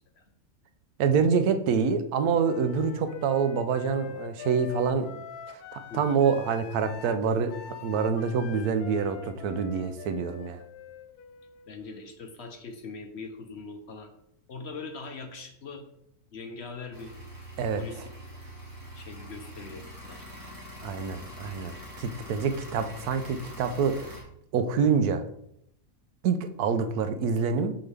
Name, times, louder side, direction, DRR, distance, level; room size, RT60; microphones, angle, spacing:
voice 1, 1.0-5.1 5.7-10.6 17.6-17.8 20.8-24.1 24.5-25.2 26.2-27.8, right 6 dB, 85° right, 8 dB, 1.1 m, -26 dB
Wind instrument woodwind instrument, 2.4-12.2, left 8 dB, 85° left, 1.1 m, -44 dB
voice 2, 11.7-14.1 14.5-15.8 16.3-17.1 17.8-18.1 18.9-20.3, left 4 dB, 55° left, 5 dB, 0.8 m, -41 dB
sound 1, 16.9-24.2, equal, 15° right, 1.4 m, -44 dB
5.8 x 5.1 x 3.3 m, 0.74 s
omnidirectional pair, 1.6 m